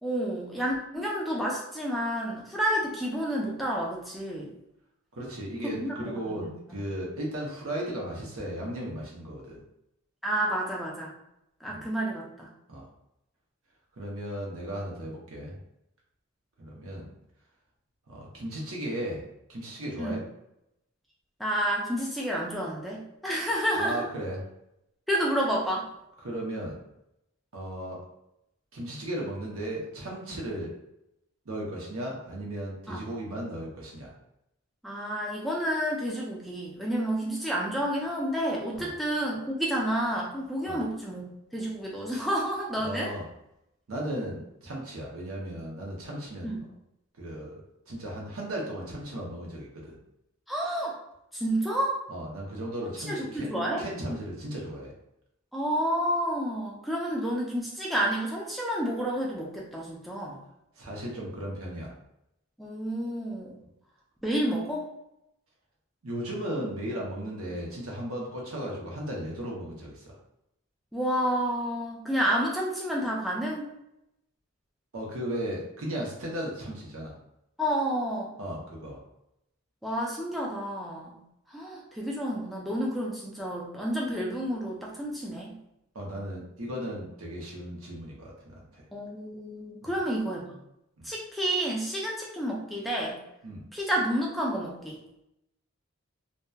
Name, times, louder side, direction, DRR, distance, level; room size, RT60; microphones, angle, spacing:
voice 1, 0.0-4.5 5.6-6.8 10.2-11.2 11.6-12.5 20.0-20.2 21.4-24.0 25.1-25.9 32.9-33.0 34.8-41.2 41.5-43.1 46.4-46.6 50.5-50.9 51.3-52.0 53.0-53.8 55.5-60.4 62.6-63.6 64.2-64.9 70.9-73.7 77.6-78.4 79.8-81.2 81.5-85.6 88.9-90.6 91.0-93.2 93.7-95.0, equal, ahead, -4 dB, 0.3 m, -30 dB
voice 2, 5.1-9.6 11.7-11.8 12.7-12.9 14.0-15.5 16.6-17.1 18.1-19.2 19.5-20.2 23.7-24.4 26.2-26.8 27.5-28.0 28.7-30.7 31.5-34.1 38.8-38.9 40.6-40.8 42.8-43.2 43.9-46.6 47.2-47.5 47.9-50.0 52.1-53.5 53.8-54.9 60.8-61.9 66.0-70.2 74.9-77.1 78.4-79.0 85.9-88.8 89.8-90.0 91.0-91.1 93.4-93.6, right 1 dB, 75° right, -3 dB, 0.8 m, -36 dB
2.7 x 2.2 x 2.2 m, 0.83 s
head